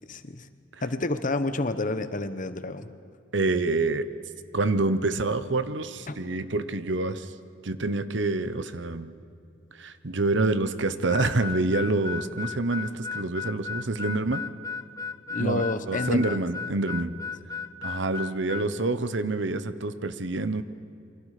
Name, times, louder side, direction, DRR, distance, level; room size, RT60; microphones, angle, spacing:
voice 1, 0.0-0.5 0.8-2.9 6.1-6.2 15.3-16.4, left 2 dB, 45° left, 11 dB, 1.1 m, -29 dB
voice 2, 3.3-4.1 4.5-7.3 7.6-9.1 9.7-14.4 15.4-17.1 17.8-20.6, right 2 dB, 70° right, 12 dB, 1.0 m, -27 dB
Harmonica, 11.1-18.7, left 6 dB, 15° left, 0.6 m, -35 dB
28.0 x 24.5 x 5.0 m, 2.6 s
head